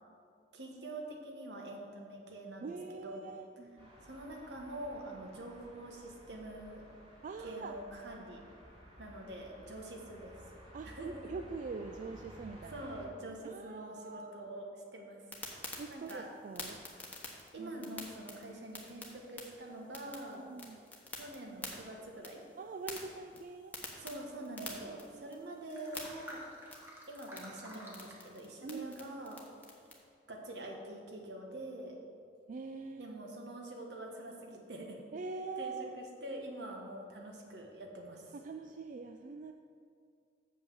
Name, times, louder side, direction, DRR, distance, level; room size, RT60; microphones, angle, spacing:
voice 1, 0.5-3.3 4.0-6.8 7.4-8.4 9.0-10.4 10.8-11.3 12.7-15.2 15.9-16.2 17.3-20.4 21.1-22.4 24.0-26.4 27.1-29.4 30.3-32.0 33.0-35.0 35.6-38.3, right 1 dB, 75° right, 0 dB, 1.4 m, -45 dB
voice 2, 2.6-3.9 7.2-7.8 10.7-12.9 13.4-14.4 15.8-16.8 17.6-17.9 20.4-20.8 22.6-23.7 24.1-25.4 28.6-28.9 32.5-33.1 35.1-36.0 38.3-39.5, right 4 dB, 45° right, 6 dB, 0.3 m, -44 dB
sound 1, 3.8-13.1, equal, 30° right, 2.1 m, -55 dB
sound 2, 15.3-29.9, left 2 dB, 10° left, 1.1 m, -49 dB
sound 3, 19.6-19.7 20.5-20.6 24.8-24.9 25.1-25.2 25.5-28.2, equal, 15° right, 1.5 m, -51 dB
7.2 x 5.4 x 7.1 m, 2.3 s
head